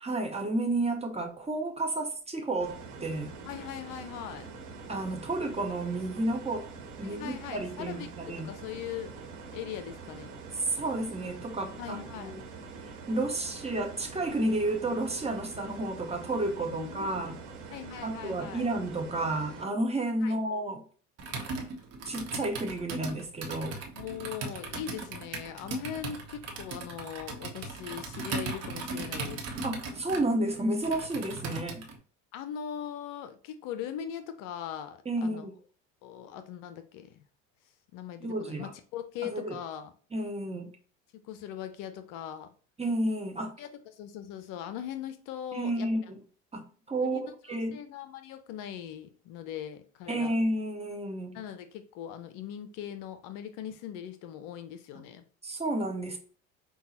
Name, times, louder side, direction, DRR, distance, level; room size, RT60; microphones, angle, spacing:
voice 1, 0.0-3.4 4.9-6.7 7.0-8.5 10.7-12.5 12.8-17.4 18.0-20.8 22.1-23.8 29.6-31.9 35.0-35.5 38.2-38.7 39.2-39.6 40.1-40.7 42.8-43.6 45.5-46.2 46.5-47.2 47.5-47.8 50.1-51.4 55.4-56.2, right 1 dB, 15° right, 0.9 m, -31 dB
sound 1, 2.6-19.6, right 4 dB, 65° right, 1.2 m, -45 dB
voice 2, 3.4-4.5 7.0-9.1 9.5-10.3 11.8-12.3 16.6-17.3 17.7-18.7 20.2-20.4 23.9-29.5 32.3-35.5 36.0-37.2 37.9-39.9 41.2-42.5 43.6-45.9 47.0-47.3 47.7-50.4 51.3-55.2, left 9 dB, 55° left, 0.6 m, -40 dB
Computer keyboard, 21.2-32.0, right 3 dB, 40° right, 1.0 m, -38 dB
5.4 x 2.3 x 2.9 m
hypercardioid pair, 75°, 39 cm